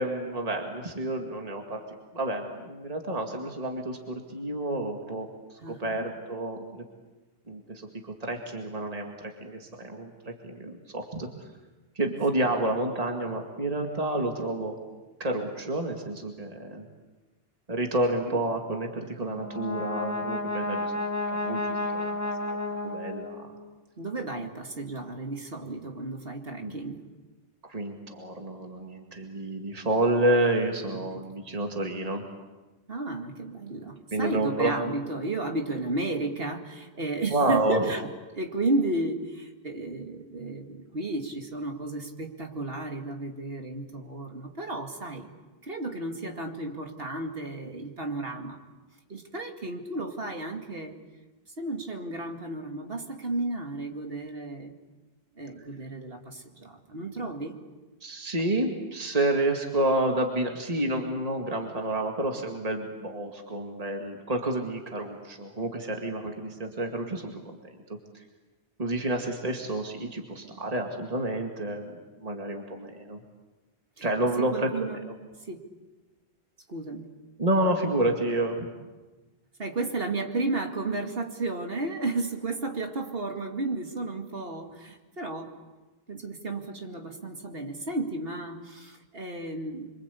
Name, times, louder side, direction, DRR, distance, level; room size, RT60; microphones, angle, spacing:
voice 1, 0.0-1.8 2.1-6.8 7.5-9.1 9.4-11.3 12.0-14.7 15.2-16.9 17.7-20.9 21.3-22.2 22.8-23.5 26.6-26.8 27.7-32.2 34.1-34.7 37.3-37.8 58.0-67.6 68.8-73.2 74.0-74.9 77.4-78.7, right 1 dB, 35° right, 2 dB, 2.3 m, -29 dB
voice 2, 5.6-6.1 12.4-12.6 18.2-18.5 24.0-27.1 30.9-31.2 32.9-38.1 38.4-45.3 45.6-48.6 49.1-51.0 51.6-54.7 55.4-57.6 74.0-74.1 74.4-75.0 75.4-75.7 76.7-77.1 79.6-85.5 86.1-89.9, right 2 dB, 60° right, 4 dB, 2.6 m, -33 dB
Brass instrument, 19.2-23.6, left 2 dB, 15° left, 1.8 m, -32 dB
26.5 x 25.0 x 8.4 m, 1.2 s
omnidirectional pair, 1.1 m